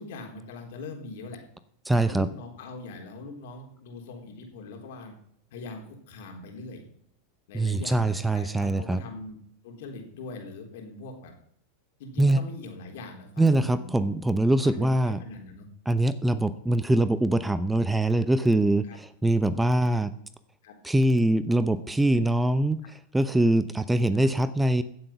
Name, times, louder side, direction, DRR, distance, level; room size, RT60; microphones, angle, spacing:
voice 1, 0.0-1.4 1.9-5.1 5.5-6.8 7.5-9.4 9.6-11.3 12.0-14.1 14.5-15.7 18.8-19.0 20.6-20.7 22.8-22.9 24.1-24.3, left 3 dB, 70° left, 3 dB, 3.8 m, -41 dB
voice 2, 1.9-2.3 7.5-9.0 12.2-12.4 13.4-15.2 15.9-20.1 20.8-22.8 23.1-24.8, right 1 dB, 5° right, 14 dB, 0.8 m, -23 dB
16.0 x 7.8 x 5.9 m, 0.68 s
hypercardioid pair, 105°, 0 cm